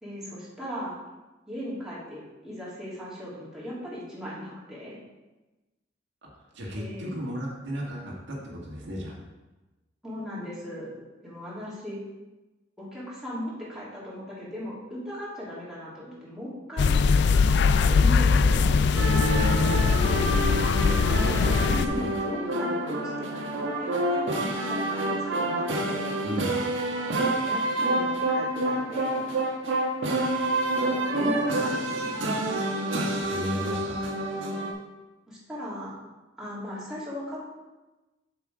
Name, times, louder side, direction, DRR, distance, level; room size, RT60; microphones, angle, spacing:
voice 1, 0.0-1.0 1.5-5.0 6.7-7.1 10.0-10.9 11.2-12.0 12.8-17.1 17.6-20.3 20.8-21.0 21.6-26.2 27.4-29.2 30.8-32.3 35.3-35.9 36.4-37.4, equal, 5° right, -9 dB, 2.8 m, -38 dB
voice 2, 6.3-9.2 21.0-22.1 26.2-26.5 33.2-34.0, equal, 70° right, -3 dB, 1.6 m, -34 dB
sound 1, 16.8-21.9, left 5 dB, 65° left, 0.4 m, -21 dB
sound 2, 18.9-34.7, right 1 dB, 90° right, 1.4 m, -28 dB
7.4 x 5.8 x 4.8 m, 1.1 s
head